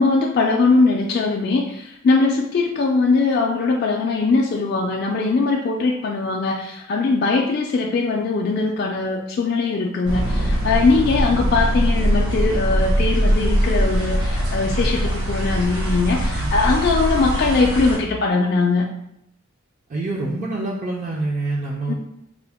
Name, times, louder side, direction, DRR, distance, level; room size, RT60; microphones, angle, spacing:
voice 1, 0.0-18.9 21.9-22.0, left 3 dB, 50° left, -1 dB, 0.3 m, -20 dB
sound 1, 10.1-18.0, equal, 55° right, 0.9 m, -21 dB
voice 2, 14.7-15.0 16.4-16.5 19.9-21.9, right 2 dB, 40° right, -2 dB, 0.4 m, -26 dB
3.7 x 2.0 x 3.4 m, 0.78 s
head